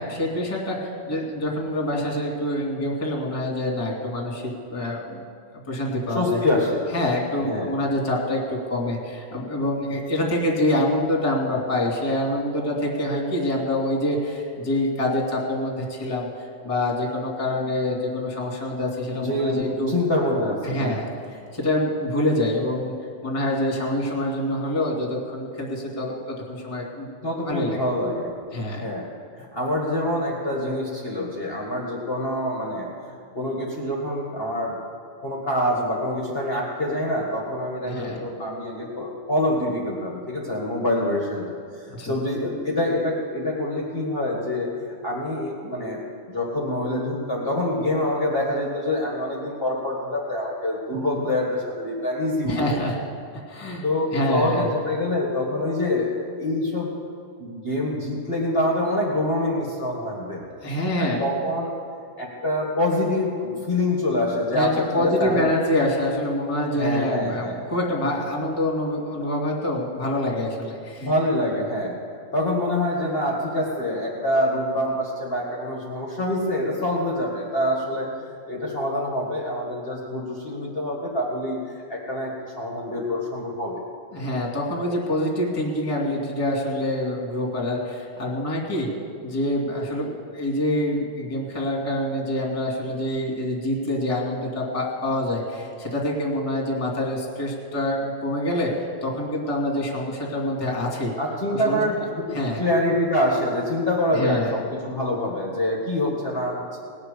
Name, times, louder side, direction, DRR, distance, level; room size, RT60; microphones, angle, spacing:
voice 1, 0.0-5.2 5.7-6.4 6.9-16.3 16.6-19.9 20.6-21.1 21.5-22.9 23.2-27.1 27.5-27.8 28.5-28.8 37.8-38.2 42.0-42.1 50.9-51.2 52.4-53.0 53.5-53.8 54.1-54.6 60.6-61.2 64.5-71.1 84.1-88.9 89.2-98.7 99.0-101.1 101.5-101.8 102.3-102.6 104.1-104.5, left 1 dB, 10° left, -1 dB, 1.8 m, -26 dB
voice 2, 6.1-6.8 7.4-7.7 19.1-21.0 27.2-28.3 28.8-29.1 29.4-34.8 35.2-46.0 46.3-52.8 53.8-56.9 57.4-60.5 61.0-61.7 62.2-65.5 66.8-67.6 71.0-72.0 72.3-78.1 78.5-83.8 101.2-106.8, left 1 dB, 30° left, -2 dB, 1.0 m, -26 dB
19.5 x 6.8 x 8.5 m, 2.3 s
omnidirectional pair, 4.0 m